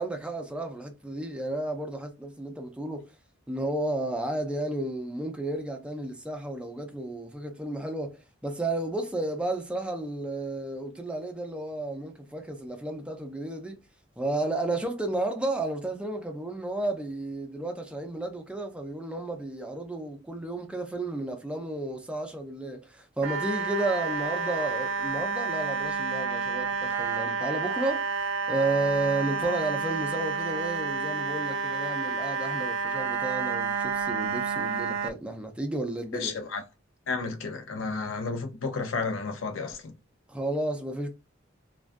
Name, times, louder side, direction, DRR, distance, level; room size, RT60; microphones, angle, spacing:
voice 1, 0.0-3.1 3.5-13.8 14.2-28.0 28.5-36.3 40.3-41.1, right 2 dB, 5° right, 0.4 m, -32 dB
sound 1, 23.2-35.1, right 5 dB, 75° right, 0.4 m, -30 dB
voice 2, 36.1-36.6 37.1-39.9, left 4 dB, 75° left, 0.5 m, -32 dB
2.3 x 2.2 x 2.4 m
head